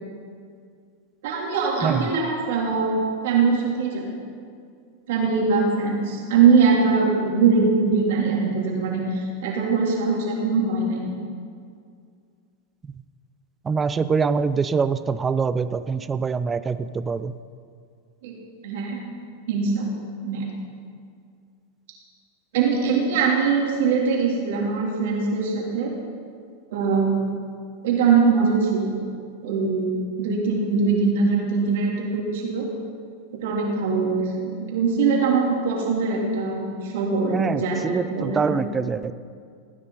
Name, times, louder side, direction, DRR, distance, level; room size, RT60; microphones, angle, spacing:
voice 1, 1.2-2.9 3.2-4.2 5.1-11.1 18.2-18.3 18.6-19.0 19.5-19.9 20.2-20.4 22.5-25.9 26.7-27.1 27.8-29.0 29.4-29.9 30.2-32.6 33.3-34.1 34.4-38.6, right 5 dB, 65° right, -2 dB, 3.3 m, -22 dB
voice 2, 13.6-17.3 37.3-39.1, right 5 dB, 20° right, 13 dB, 0.5 m, -24 dB
17.5 x 9.6 x 4.1 m, 2.2 s
hypercardioid pair, 100°, 0 cm